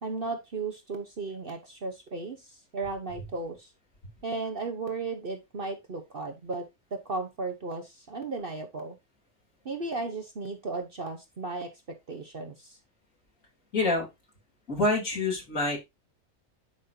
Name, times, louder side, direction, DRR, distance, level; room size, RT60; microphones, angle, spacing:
voice 1, 0.0-3.7 4.2-6.6 6.9-8.9 9.6-11.8 12.1-12.8, right 3 dB, 45° right, 5 dB, 1.1 m, -35 dB
voice 2, 13.7-14.1 14.7-15.8, left 2 dB, 75° left, 0 dB, 3.5 m, -26 dB
10.5 x 5.4 x 2.7 m, 0.21 s
omnidirectional pair, 1.4 m